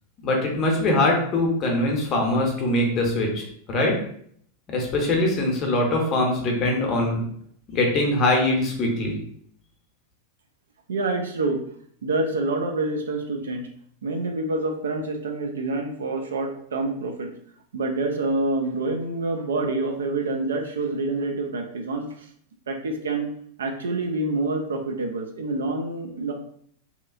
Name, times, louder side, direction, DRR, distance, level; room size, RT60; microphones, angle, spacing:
voice 1, 0.2-3.9 4.7-7.2 7.7-9.1, left 1 dB, 30° left, 0 dB, 0.7 m, -22 dB
voice 2, 10.9-11.6 12.0-13.7 14.0-17.3 17.7-22.3 22.7-23.3 23.6-26.3, right 2 dB, 65° right, 3 dB, 0.3 m, -27 dB
2.8 x 2.3 x 2.4 m, 0.63 s
figure-of-eight pair, 90°, 0 cm